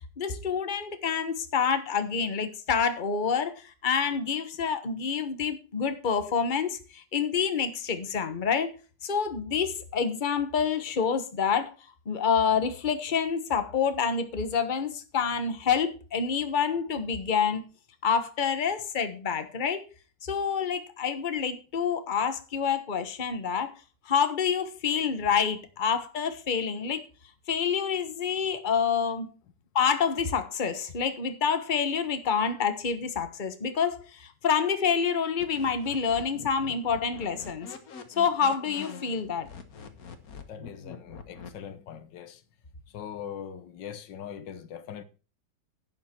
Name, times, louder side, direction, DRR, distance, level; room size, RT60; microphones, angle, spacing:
voice 1, 0.2-8.7 9.0-11.7 12.1-17.6 18.0-19.8 20.2-23.7 24.0-27.0 27.5-29.3 29.7-37.7 38.2-39.5, left 6 dB, 30° left, 1.3 m, -27 dB
sound 1, 35.4-41.5, left 6 dB, 55° left, 1.8 m, -44 dB
voice 2, 40.5-42.4 42.9-45.0, left 8 dB, 85° left, 1.7 m, -41 dB
11.0 x 8.6 x 4.5 m
omnidirectional pair, 1.9 m